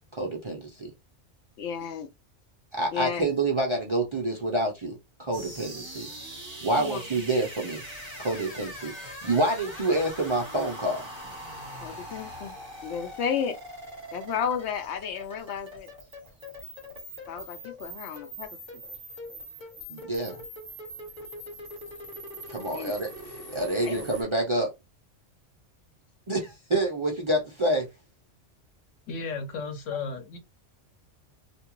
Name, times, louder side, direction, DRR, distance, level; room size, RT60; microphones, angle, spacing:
voice 1, 0.1-0.9 2.7-6.1 6.6-7.8 8.2-11.0 19.9-20.4 22.5-23.1 23.5-24.7 26.3-27.9, right 1 dB, 40° right, 0.4 m, -27 dB
voice 2, 1.6-2.1 2.9-3.3 6.8-7.0 11.8-12.6 12.8-13.6 14.1-15.9 17.3-18.5 22.7-22.9 23.8-24.1, left 7 dB, 70° left, 0.8 m, -32 dB
sound 1, 5.3-24.2, equal, 25° right, 1.3 m, -42 dB
voice 3, 29.1-30.4, left 4 dB, 90° left, 1.1 m, -34 dB
2.5 x 2.3 x 2.9 m
omnidirectional pair, 1.3 m